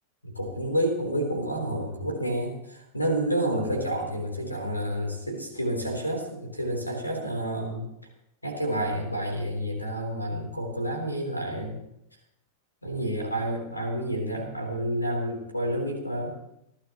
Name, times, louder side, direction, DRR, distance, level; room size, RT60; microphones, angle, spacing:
voice 1, 0.2-7.9 8.4-11.8 12.8-16.4, right 1 dB, 85° left, 3 dB, 3.7 m, -29 dB
28.0 x 12.0 x 3.1 m, 0.83 s
figure-of-eight pair, 90°, 0 cm